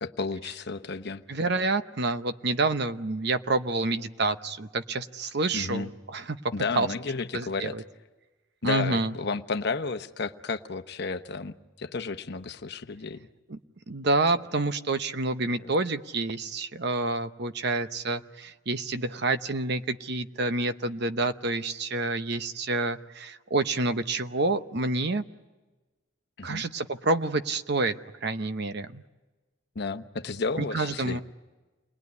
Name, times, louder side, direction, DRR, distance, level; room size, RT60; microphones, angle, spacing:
voice 1, 0.0-1.2 5.5-5.9 6.5-7.7 8.6-13.3 15.6-15.7 26.4-26.7 29.7-31.2, left 4 dB, 55° left, 9 dB, 0.9 m, -32 dB
voice 2, 1.3-6.4 6.8-6.9 7.3-7.8 8.6-9.1 13.5-13.6 13.9-25.2 26.4-27.9 28.2-29.0 30.6-31.2, right 2 dB, 55° right, 10 dB, 0.9 m, -28 dB
29.5 x 21.0 x 9.6 m, 1.2 s
head